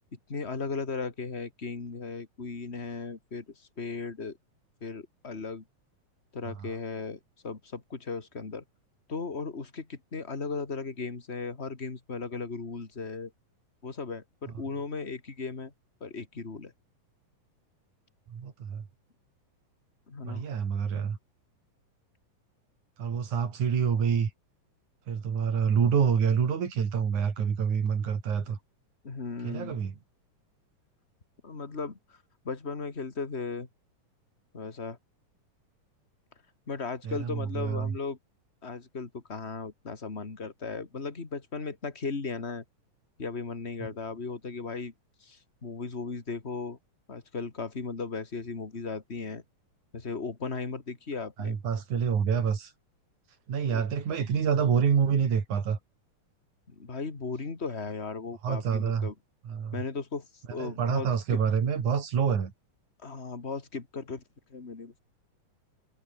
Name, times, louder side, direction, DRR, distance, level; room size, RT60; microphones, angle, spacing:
voice 1, 0.1-4.4 4.8-5.6 6.3-8.6 9.1-13.3 13.8-15.7 16.0-16.7 20.1-20.4 28.5-28.6 29.0-29.8 31.4-32.2 32.4-33.7 34.5-35.0 36.7-38.2 38.6-42.6 43.2-44.9 45.2-46.8 47.1-49.4 49.9-51.6 53.7-53.8 56.7-59.1 59.7-61.4 63.0-64.2 64.5-65.0, left 4 dB, 20° left, 2.4 m, -36 dB
voice 2, 18.3-18.8 20.2-21.2 23.0-24.3 25.1-28.6 29.4-29.9 37.0-38.0 51.4-52.7 53.5-55.8 58.4-59.1 59.4-59.8 60.6-62.5, right 7 dB, 60° right, 4.5 m, -27 dB
omnidirectional pair, 4.0 m